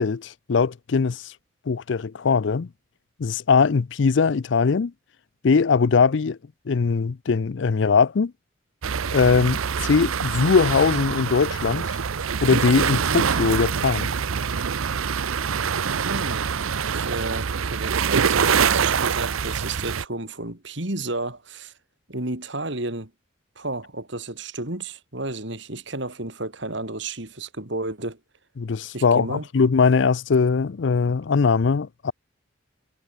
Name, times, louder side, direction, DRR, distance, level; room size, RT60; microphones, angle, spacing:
voice 1, 0.0-1.3 1.7-2.7 3.2-4.9 5.4-6.4 6.7-8.3 9.1-12.0 12.4-14.1 28.6-32.1, left 5 dB, 60° left, 0.5 m, -21 dB
sound 1, 8.8-20.0, right 6 dB, 85° right, 0.7 m, -25 dB
voice 2, 16.0-16.5 16.9-21.7 22.1-23.1 23.6-28.2 28.9-29.5, right 2 dB, 60° right, 3.4 m, -32 dB
head